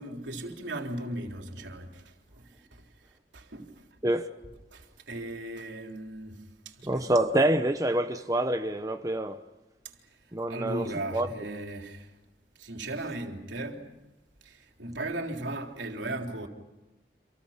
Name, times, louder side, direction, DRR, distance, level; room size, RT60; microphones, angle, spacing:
voice 1, 0.0-2.8 3.3-3.8 4.7-7.2 10.5-12.1 12.6-13.9 14.4-16.5, right 1 dB, 85° right, 3.7 m, -37 dB
voice 2, 4.0-4.3 6.8-9.4 10.3-10.9 11.1-11.3, right 1 dB, 20° right, 1.0 m, -26 dB
29.5 x 27.0 x 5.9 m
head